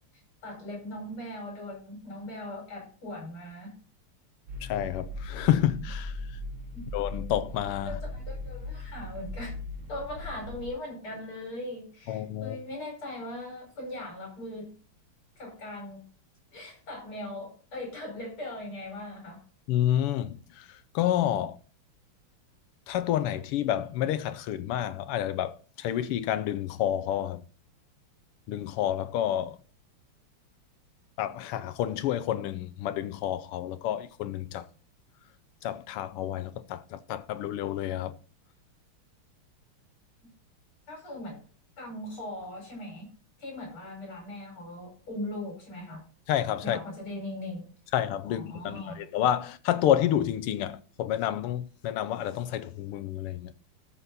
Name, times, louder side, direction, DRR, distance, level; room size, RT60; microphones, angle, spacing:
voice 1, 0.4-3.7 7.9-9.5 9.9-14.7 15.4-16.0 16.5-19.4 40.9-41.4 41.8-43.1 43.4-46.1 46.6-47.6 48.3-49.0, left 1 dB, 70° left, 6.0 m, -39 dB
sound 1, 4.5-10.7, left 2 dB, 70° right, 2.9 m, -38 dB
voice 2, 4.6-6.2 6.9-8.0 12.1-12.6 19.7-21.6 22.9-27.4 28.5-29.6 31.2-34.7 35.6-38.1 46.3-46.8 47.9-53.5, left 11 dB, 90° left, 1.7 m, -29 dB
13.5 x 6.0 x 4.1 m
omnidirectional pair, 2.4 m